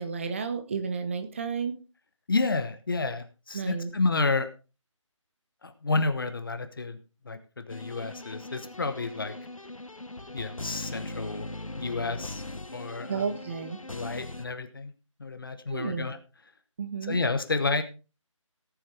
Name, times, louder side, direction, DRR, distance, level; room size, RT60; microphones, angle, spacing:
voice 1, 0.0-1.8 3.5-3.9 13.1-13.8 15.7-16.1 16.8-17.2, right 5 dB, 25° right, 9 dB, 1.0 m, -32 dB
voice 2, 2.3-4.5 5.6-7.0 7.2-9.3 10.3-11.5 11.8-12.4 12.7-13.2 13.9-14.9 15.2-16.2 17.0-17.8, left 3 dB, 40° left, 9 dB, 1.1 m, -30 dB
sound 1, 7.7-14.5, left 2 dB, 90° left, 0.9 m, -40 dB
18.0 x 7.7 x 3.4 m, 0.32 s
figure-of-eight pair, 160°, 17 cm